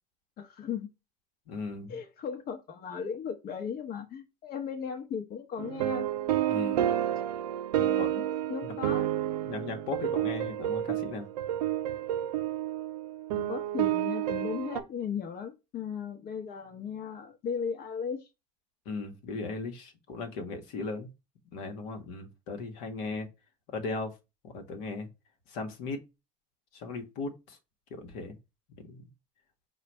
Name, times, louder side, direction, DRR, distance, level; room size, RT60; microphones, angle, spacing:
voice 1, 0.4-0.9 1.9-6.1 7.8-9.1 13.3-18.3, left 7 dB, 50° left, 0.9 m, -37 dB
voice 2, 1.5-2.0 6.5-6.9 8.0-8.1 9.5-11.3 18.8-21.1 21.5-23.3 23.7-24.1 24.4-25.1 25.5-26.0 26.7-27.6 27.9-28.3 28.9-29.0, left 3 dB, 70° left, 1.1 m, -37 dB
sound 1, 5.6-14.8, right 12 dB, 85° right, 0.5 m, -30 dB
4.9 x 2.3 x 4.5 m
hypercardioid pair, 80°, 20 cm